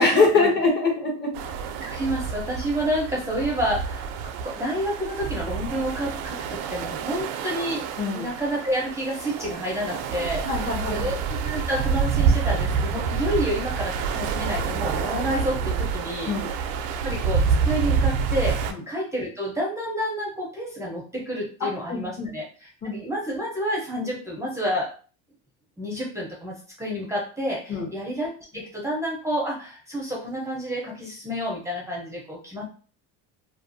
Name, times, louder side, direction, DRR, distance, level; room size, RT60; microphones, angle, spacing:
voice 1, 0.0-1.4 8.0-8.3 10.4-11.1 16.3-16.5 18.7-18.8 21.6-22.3 22.8-23.0 27.7-27.9, left 3 dB, 30° left, 0 dB, 1.0 m, -23 dB
sound 1, 1.3-18.7, right 6 dB, 80° right, 0.5 m, -27 dB
voice 2, 1.8-16.7 17.0-24.9 25.8-32.7, equal, 10° right, -3 dB, 0.6 m, -29 dB
2.5 x 2.3 x 2.6 m, 0.39 s
supercardioid pair, 110°, 33 cm